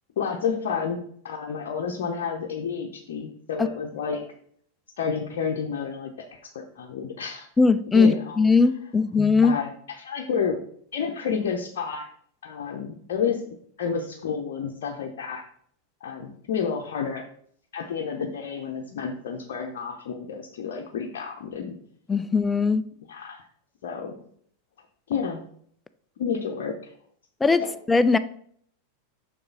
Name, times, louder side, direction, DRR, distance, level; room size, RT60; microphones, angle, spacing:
voice 1, 0.2-4.2 5.0-6.3 6.5-7.5 7.9-8.4 9.4-9.7 10.0-10.6 10.9-12.1 12.4-13.4 13.8-15.4 16.0-17.2 17.7-21.7 23.1-23.5 23.8-24.2 25.1-25.4 26.2-26.9 27.6-27.7, left 6 dB, 55° left, 0.8 m, -30 dB
voice 2, 7.6-9.6 22.1-22.8 27.4-27.6 27.9-28.2, left 4 dB, 10° left, 0.4 m, -19 dB
6.8 x 6.1 x 4.0 m
figure-of-eight pair, 90°, 0 cm